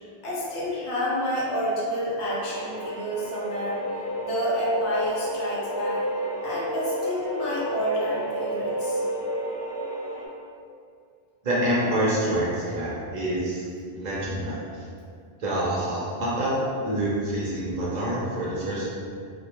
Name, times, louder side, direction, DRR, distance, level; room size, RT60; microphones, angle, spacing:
voice 1, 0.2-3.8 4.2-6.0 6.4-9.0, equal, 80° left, -6 dB, 0.9 m, -29 dB
sound 1, 2.3-10.3, equal, 40° left, 0.9 m, -31 dB
voice 2, 11.4-13.6 13.9-14.6 15.4-18.9, right 1 dB, 55° right, -6 dB, 0.5 m, -26 dB
2.2 x 2.1 x 2.8 m, 2.2 s
omnidirectional pair, 1.1 m